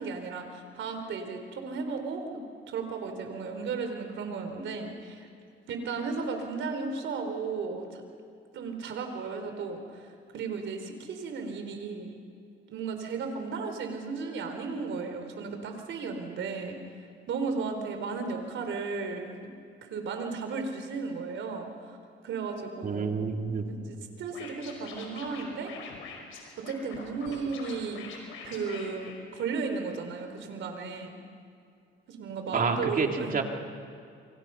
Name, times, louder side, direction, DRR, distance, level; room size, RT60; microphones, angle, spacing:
voice 1, 0.0-5.3 5.7-8.0 8.5-10.1 10.3-12.2 12.7-16.8 17.3-19.5 19.8-22.0 22.2-23.2 23.7-25.7 26.7-28.1 28.4-31.2 32.1-33.4, right 4 dB, 75° right, 5 dB, 4.1 m, -35 dB
voice 2, 22.8-23.7 32.5-33.4, right 5 dB, 45° right, 3 dB, 2.9 m, -28 dB
Scratching (performance technique), 24.3-29.8, left 5 dB, 90° left, 5.5 m, -45 dB
28.0 x 25.5 x 5.8 m, 2.4 s
cardioid pair, 90°, 20 cm